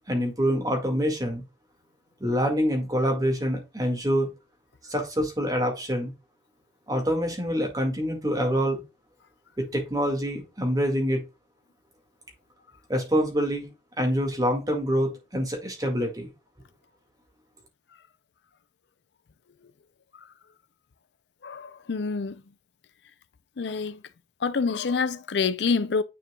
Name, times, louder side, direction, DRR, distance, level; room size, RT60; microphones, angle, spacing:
voice 1, 0.1-1.4 2.2-4.3 4.9-6.1 6.9-8.8 9.6-11.2 12.9-13.7 14.0-16.3, equal, 20° right, 2.0 m, -26 dB
voice 2, 21.4-22.4 23.6-24.0 24.4-26.0, left 5 dB, 85° left, 0.5 m, -27 dB
9.2 x 4.5 x 2.3 m
head